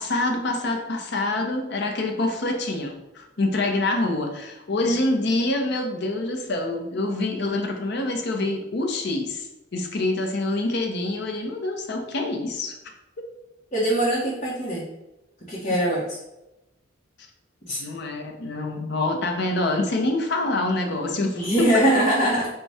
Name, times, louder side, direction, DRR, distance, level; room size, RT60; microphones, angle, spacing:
voice 1, 0.0-12.8 15.7-15.8 17.8-21.9, left 2 dB, 60° left, 3 dB, 0.7 m, -26 dB
voice 2, 13.7-14.8 15.5-16.2 17.6-17.8 21.3-22.5, right 1 dB, 35° left, -7 dB, 0.9 m, -22 dB
4.7 x 2.3 x 4.0 m, 0.94 s
head